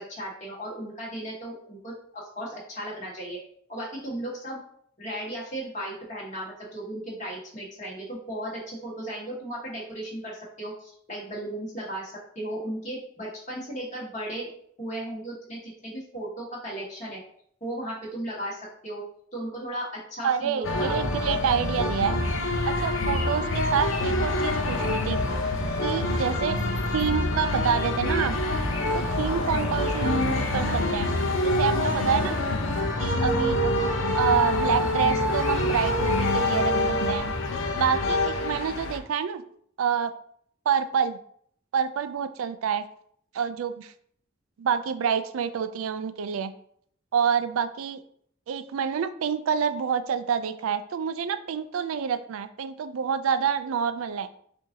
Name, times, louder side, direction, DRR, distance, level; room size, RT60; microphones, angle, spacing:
voice 1, 0.0-3.4 3.7-4.6 5.0-14.5 14.8-17.2 17.6-20.9, right 1 dB, 35° left, -5 dB, 1.7 m, -36 dB
voice 2, 20.2-22.2 22.7-25.2 25.8-26.6 26.9-28.4 28.9-31.1 31.4-32.4 33.0-36.7 37.1-37.3 37.8-39.4 39.8-40.1 40.7-41.2 41.7-42.8 43.3-43.9 44.6-46.5 47.1-48.0 48.5-54.3, right 7 dB, 90° right, 11 dB, 0.4 m, -27 dB
sound 1, 20.6-39.0, left 1 dB, 75° left, 0.6 m, -26 dB
7.4 x 2.6 x 2.8 m, 0.64 s
head